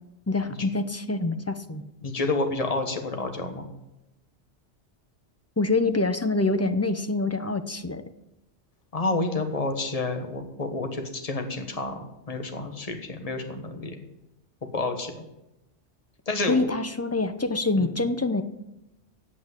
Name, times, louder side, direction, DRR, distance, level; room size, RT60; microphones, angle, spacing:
voice 1, 0.3-1.8 5.6-8.0 16.5-18.4, left 3 dB, 15° left, 9 dB, 0.6 m, -25 dB
voice 2, 2.0-3.6 8.9-12.0 12.3-14.0 14.7-15.1 16.3-16.7 17.8-17.9, left 2 dB, 35° left, 5 dB, 1.5 m, -29 dB
8.6 x 8.6 x 9.5 m, 0.91 s
omnidirectional pair, 1.2 m